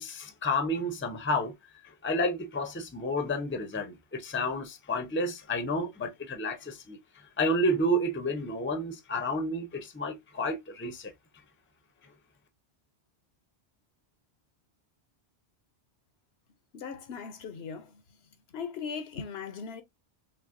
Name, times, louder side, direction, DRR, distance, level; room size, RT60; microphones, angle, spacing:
voice 1, 0.0-1.5 2.0-11.1, left 1 dB, 15° left, 0.5 m, -30 dB
voice 2, 16.7-18.0 18.5-19.8, left 6 dB, 70° left, 0.9 m, -38 dB
5.7 x 2.1 x 2.5 m
omnidirectional pair, 1.1 m